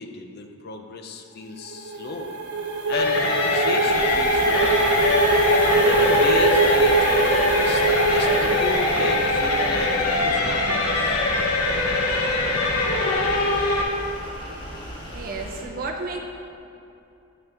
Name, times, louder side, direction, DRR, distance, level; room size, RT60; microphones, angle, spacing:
voice 1, 0.0-2.3 2.9-4.8 5.7-7.8 8.1-11.2, left 3 dB, 45° left, 5 dB, 0.6 m, -34 dB
sound 1, 1.6-10.3, right 2 dB, 85° right, 1.1 m, -22 dB
sound 2, 2.9-13.8, left 2 dB, 75° left, 1.1 m, -23 dB
sound 3, 3.9-15.6, equal, 20° left, 1.3 m, -37 dB
voice 2, 15.1-16.2, right 3 dB, 40° right, 0 dB, 0.6 m, -32 dB
9.4 x 7.7 x 3.5 m, 2.7 s
head